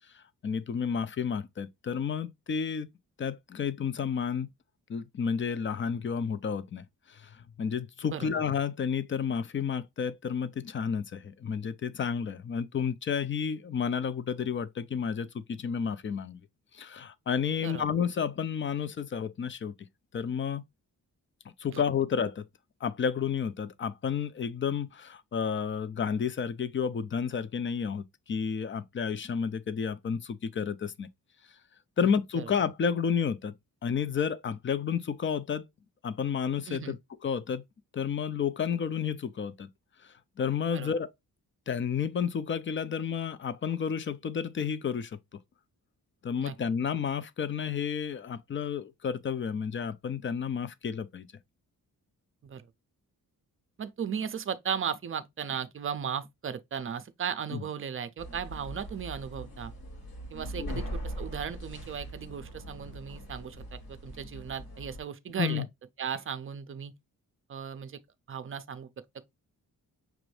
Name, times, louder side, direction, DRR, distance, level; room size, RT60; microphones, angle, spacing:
voice 1, 0.4-2.9 3.2-4.5 4.9-6.8 7.6-16.4 16.7-19.7 20.1-20.6 21.6-22.4 22.8-28.0 28.3-31.1 32.0-33.5 33.8-35.6 36.0-37.0 37.2-37.6 37.9-39.7 40.4-41.1 41.7-45.1 46.2-51.3 57.5-57.6 60.6-60.8 65.4-65.7, left 7 dB, 35° left, 0.4 m, -31 dB
voice 2, 36.7-37.0 40.7-40.9 46.4-46.6 52.4-52.7 53.8-59.7 60.3-65.6 66.0-66.9 67.5-68.0 68.3-68.9, right 7 dB, 35° right, 0.5 m, -36 dB
sound 1, 58.2-65.0, right 1 dB, 75° left, 2.6 m, -41 dB
5.9 x 2.6 x 3.2 m
wide cardioid pair, 150°, 36 cm